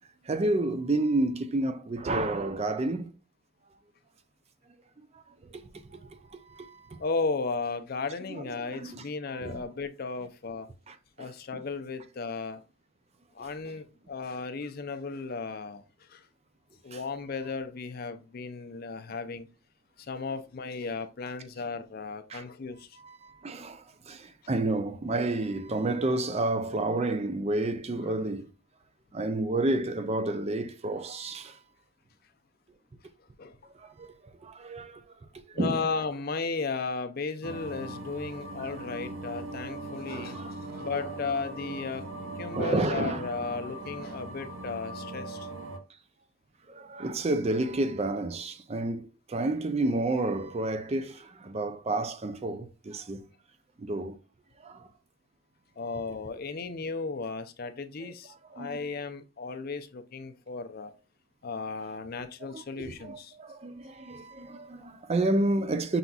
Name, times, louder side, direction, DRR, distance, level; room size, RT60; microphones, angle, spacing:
voice 1, 0.2-3.2 5.0-7.0 8.3-9.1 9.3-9.6 10.9-11.6 13.4-13.5 16.9-17.0 22.3-22.4 23.0-28.5 29.1-31.6 33.7-35.0 35.5-35.9 38.6-38.7 40.0-41.1 42.5-43.3 46.7-53.3 53.8-54.2 54.6-54.9 58.0-58.1 58.5-58.8 62.5-66.0, right 2 dB, 30° right, 0.4 m, -31 dB
voice 2, 7.0-10.7 11.2-12.6 13.3-15.8 16.1-16.2 16.8-19.5 20.0-22.9 33.4-33.6 35.5-40.4 40.7-42.1 42.4-45.5 55.8-60.9 61.4-63.3, left 4 dB, 45° left, 0.5 m, -35 dB
sound 1, 37.4-45.8, right 2 dB, 75° right, 0.7 m, -40 dB
5.6 x 3.9 x 2.3 m
head